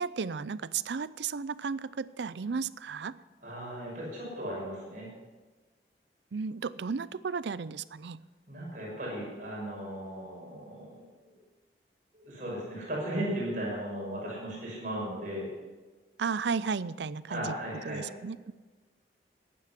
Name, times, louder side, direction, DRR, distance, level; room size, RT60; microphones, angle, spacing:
voice 1, 0.0-3.1 6.3-8.2 16.2-17.5 17.9-18.5, right 5 dB, 75° right, 17 dB, 0.5 m, -34 dB
voice 2, 3.4-5.1 8.5-11.4 12.1-15.5 17.3-18.0, right 1 dB, 45° right, -4 dB, 6.0 m, -36 dB
15.0 x 11.0 x 5.9 m, 1.3 s
head